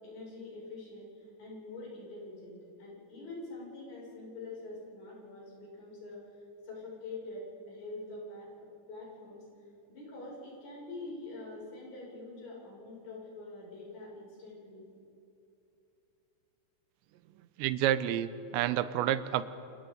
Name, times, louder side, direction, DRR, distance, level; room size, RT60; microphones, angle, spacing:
voice 1, 0.0-6.2 6.6-9.5 9.9-14.9, left 2 dB, 65° left, -5 dB, 8.8 m, -45 dB
voice 2, 17.6-19.4, right 12 dB, 80° right, 13 dB, 2.8 m, -29 dB
29.0 x 28.5 x 4.0 m, 2.9 s
omnidirectional pair, 5.4 m